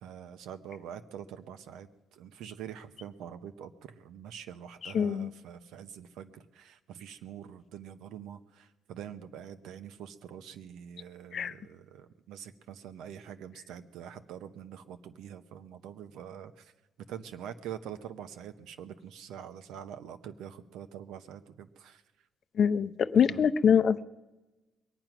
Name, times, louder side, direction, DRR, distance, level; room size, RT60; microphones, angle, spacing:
voice 1, 0.0-16.7 17.0-22.0 23.3-23.5, right 9 dB, 90° right, 10 dB, 0.8 m, -45 dB
voice 2, 4.8-5.3 11.3-11.5 22.6-24.0, left 7 dB, 60° left, 13 dB, 0.6 m, -24 dB
22.0 x 9.1 x 6.0 m, 1.1 s
cardioid pair, 90°, 0 cm